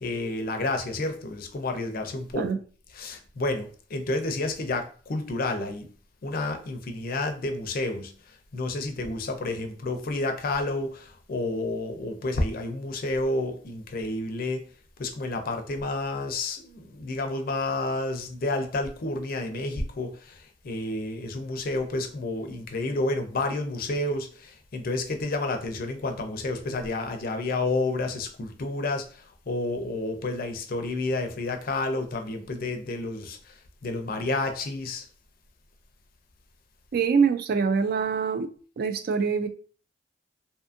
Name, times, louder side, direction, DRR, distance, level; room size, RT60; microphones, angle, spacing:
voice 1, 0.0-2.5 2.9-5.9 6.2-8.1 8.5-14.6 15.0-29.0 29.5-33.4 33.8-35.0, left 2 dB, 55° left, 0.4 m, -30 dB
voice 2, 36.9-38.5 38.8-39.5, right 5 dB, 55° right, 0.3 m, -24 dB
2.6 x 2.5 x 2.4 m
head